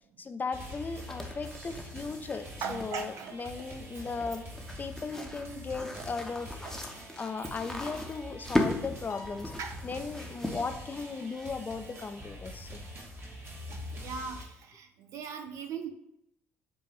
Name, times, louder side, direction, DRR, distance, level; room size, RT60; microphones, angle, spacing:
voice 1, 0.2-4.4 4.8-6.6 7.2-9.5 9.8-12.8, left 4 dB, 25° left, 8 dB, 0.6 m, -37 dB
sound 1, 0.5-14.4, equal, 35° right, 1.6 m, -45 dB
sound 2, 1.0-11.8, left 1 dB, 5° left, 0.9 m, -38 dB
voice 2, 2.6-3.5 5.1-5.3 5.9-6.0 6.6-6.8 9.6-9.7 13.9-15.9, right 6 dB, 55° right, 6 dB, 0.7 m, -39 dB
Piano, 9.1-11.6, left 4 dB, 55° left, 1.0 m, -51 dB
7.9 x 2.8 x 4.4 m, 0.80 s
figure-of-eight pair, 50°, 7 cm